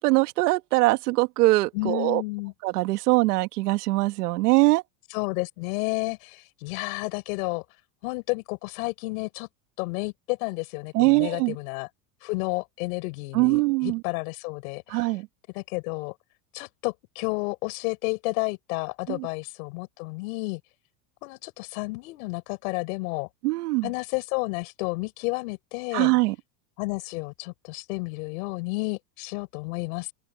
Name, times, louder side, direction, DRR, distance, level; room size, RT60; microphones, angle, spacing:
voice 1, 0.0-2.2 2.6-4.8 10.9-11.6 13.3-14.0 14.9-15.3 19.1-19.3 23.4-23.9 25.9-26.4, right 22 dB, 75° right, 1.8 m, -22 dB
voice 2, 1.7-2.5 5.1-7.6 8.0-9.5 9.8-11.9 12.2-15.1 15.5-16.1 16.5-20.6 21.2-23.3 23.8-26.1 26.8-30.1, left 26 dB, 60° left, 5.0 m, -31 dB
open air
supercardioid pair, 165°, 46 cm